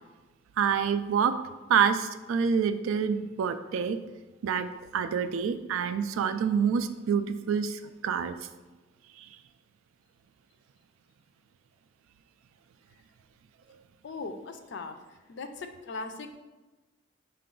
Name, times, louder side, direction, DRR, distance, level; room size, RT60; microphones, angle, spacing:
voice 1, 0.6-1.4 1.7-4.0 4.4-8.3 9.2-9.3, right 7 dB, 75° right, 11 dB, 0.3 m, -27 dB
voice 2, 14.0-15.0 15.3-16.4, left 3 dB, 60° left, 7 dB, 0.4 m, -39 dB
5.7 x 2.2 x 3.7 m, 1.2 s
head